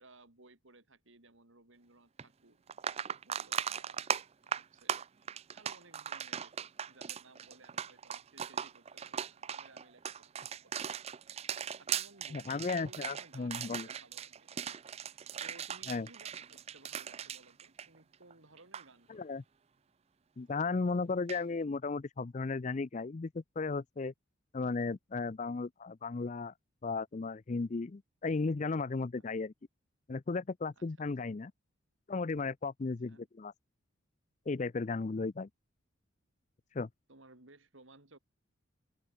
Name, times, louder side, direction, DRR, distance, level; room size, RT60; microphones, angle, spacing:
voice 1, 0.0-2.6 2.9-4.1 4.4-5.0 5.5-11.2 11.8-14.5 15.0-19.3 29.2-29.3 30.8-31.3 33.1-33.3 37.1-38.2, right 2 dB, 65° right, 3.3 m, -60 dB
sound 1, 2.2-2.3 2.7-18.3 18.6-18.8 21.3-21.4, right 8 dB, 30° right, 0.4 m, -39 dB
voice 2, 12.3-13.9 15.9-16.1 19.1-19.4 20.4-24.1 24.5-26.5 26.8-29.5 30.1-31.5 32.1-33.5 34.5-35.5 36.7-36.9, left 4 dB, 35° left, 0.4 m, -35 dB
open air
head